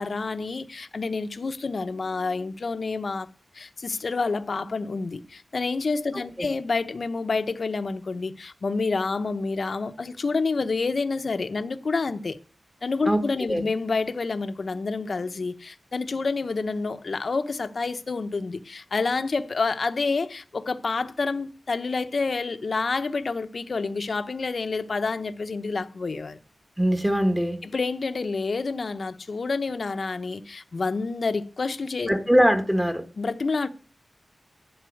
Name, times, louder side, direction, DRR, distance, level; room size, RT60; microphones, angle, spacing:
voice 1, 0.0-3.3 3.5-12.4 12.8-26.4 27.6-32.1 33.2-33.7, left 4 dB, 55° left, 0.9 m, -28 dB
voice 2, 26.8-27.6 32.1-33.0, equal, 10° right, 1.5 m, -21 dB
11.5 x 4.2 x 7.7 m
wide cardioid pair, 95°, 0 cm